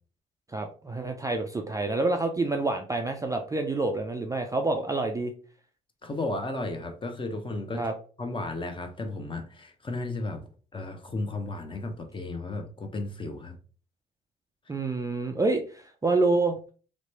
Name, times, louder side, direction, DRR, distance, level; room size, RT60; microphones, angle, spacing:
voice 1, 0.5-5.3 7.7-7.9 14.7-16.6, right 3 dB, 15° right, 4 dB, 0.4 m, -27 dB
voice 2, 6.0-7.8 8.2-10.4 10.7-13.6, left 2 dB, 25° left, 5 dB, 0.7 m, -34 dB
3.0 x 2.1 x 3.0 m, 0.39 s
supercardioid pair, 60°, 21 cm